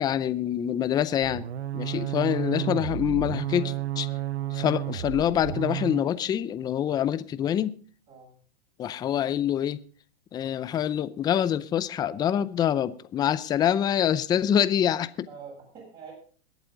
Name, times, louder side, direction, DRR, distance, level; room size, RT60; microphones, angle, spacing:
voice 1, 0.0-1.4 1.7-4.1 4.5-7.7 8.8-9.8 10.3-15.1, left 10 dB, 15° left, 0.5 m, -25 dB
sound 1, 1.2-6.1, right 13 dB, 85° right, 0.8 m, -32 dB
voice 2, 15.3-16.1, right 5 dB, 30° right, 7.5 m, -46 dB
21.5 x 8.1 x 3.9 m
hypercardioid pair, 140°, 31 cm